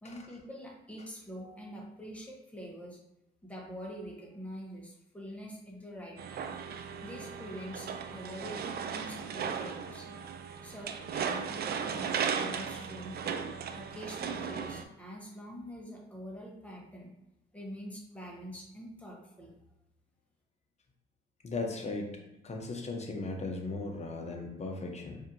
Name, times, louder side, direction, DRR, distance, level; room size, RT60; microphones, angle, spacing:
voice 1, 0.0-3.0 3.4-6.6 7.0-10.2 10.6-13.4 13.8-17.1 17.5-19.5, equal, 5° left, -3 dB, 1.2 m, -45 dB
sound 1, 6.2-14.8, right 7 dB, 55° right, 0.4 m, -36 dB
voice 2, 21.4-22.2 22.4-25.2, left 3 dB, 35° left, 1 dB, 0.9 m, -37 dB
4.8 x 2.7 x 2.7 m, 0.90 s
cardioid pair, 90°, 20 cm